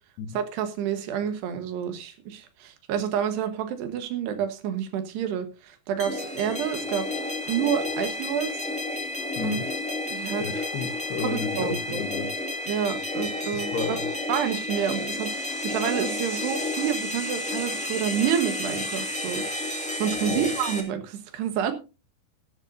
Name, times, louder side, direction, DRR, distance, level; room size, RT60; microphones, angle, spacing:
voice 1, 0.3-7.1 7.5-8.6 9.4-9.6 10.1-10.4 11.2-12.0 12.7-14.0 14.3-19.4 20.0-21.7, right 9 dB, 80° right, 9 dB, 3.4 m, -29 dB
sound 1, 6.0-20.8, left 2 dB, 5° left, 0.5 m, -31 dB
voice 2, 9.4-9.7 10.4-12.3 13.5-14.0 20.3-20.5, left 6 dB, 75° left, 9 dB, 3.0 m, -32 dB
14.5 x 12.0 x 2.6 m, 0.30 s
omnidirectional pair, 4.8 m